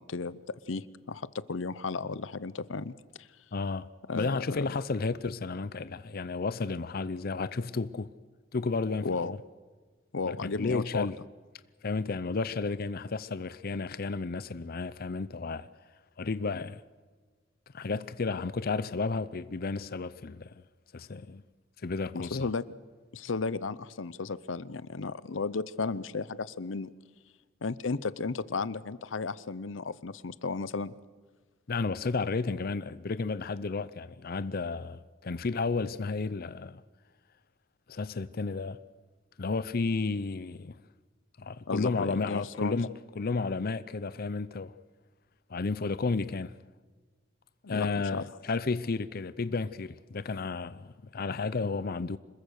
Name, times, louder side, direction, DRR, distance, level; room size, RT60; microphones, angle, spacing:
voice 1, 0.0-2.9 4.1-4.6 9.0-9.3 10.1-11.1 22.1-22.6 23.1-26.9 27.6-30.9 41.7-42.8 47.6-48.2, left 4 dB, 90° left, 0.7 m, -34 dB
voice 2, 3.5-3.9 4.1-8.1 8.5-9.4 10.3-11.2 11.8-15.7 16.2-16.8 17.7-20.6 20.9-21.4 21.8-22.5 31.7-36.8 37.9-38.8 39.4-40.8 41.4-44.7 45.5-46.5 47.7-52.2, left 4 dB, 50° left, 0.6 m, -32 dB
26.5 x 21.5 x 6.5 m
head